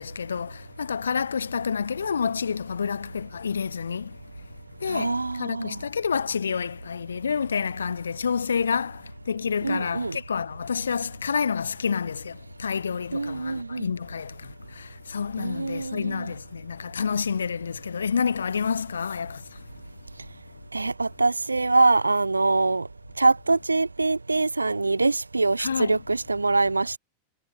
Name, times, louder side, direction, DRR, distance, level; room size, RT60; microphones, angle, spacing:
voice 1, 0.0-4.2 4.8-19.6 25.6-26.0, left 6 dB, 70° left, 1.4 m, -29 dB
voice 2, 4.9-5.8 9.6-10.2 13.1-13.9 15.4-16.3 20.7-22.9 23.2-27.0, right 3 dB, 80° right, 1.2 m, -24 dB
figure-of-eight pair, 90°, 0 cm